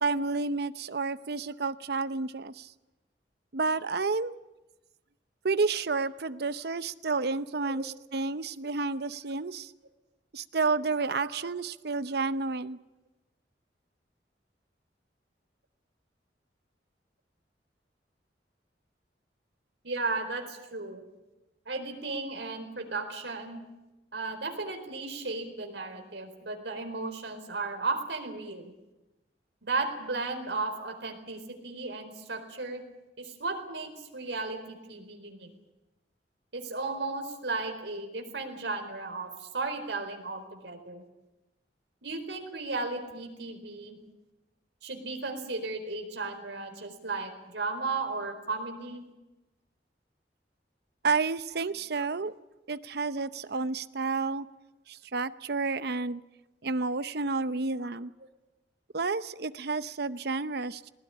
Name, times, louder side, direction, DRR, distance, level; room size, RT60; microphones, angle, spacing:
voice 1, 0.0-2.7 3.5-4.3 5.4-9.7 10.3-12.8 51.0-52.3 52.7-54.5 54.9-56.2 56.6-58.1 58.9-60.9, right 4 dB, 65° right, 14 dB, 0.8 m, -30 dB
voice 2, 11.2-11.5 19.8-21.0 21.7-23.6 24.1-28.7 29.6-32.8 33.2-35.5 36.5-41.0 42.0-44.0 44.8-49.0, right 3 dB, 80° right, 5 dB, 4.3 m, -35 dB
19.5 x 19.0 x 10.0 m, 1.0 s
head